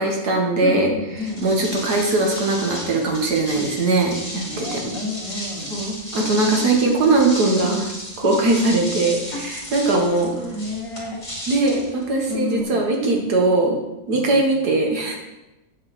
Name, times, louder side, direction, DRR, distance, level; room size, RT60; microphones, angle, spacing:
voice 1, 0.0-0.9 1.4-4.9 5.7-7.9 8.2-10.3 11.5-13.8 14.1-15.2, right 2 dB, 80° right, 1 dB, 2.0 m, -20 dB
voice 2, 0.6-1.7 3.5-3.6 4.5-5.8 8.2-8.5 9.3-9.6 9.9-11.2 12.3-12.8 14.1-14.4, left 2 dB, 55° left, -1 dB, 1.9 m, -31 dB
sound 1, 1.2-12.6, left 1 dB, 20° left, 2.1 m, -34 dB
8.6 x 6.7 x 4.2 m, 0.98 s
omnidirectional pair, 1.7 m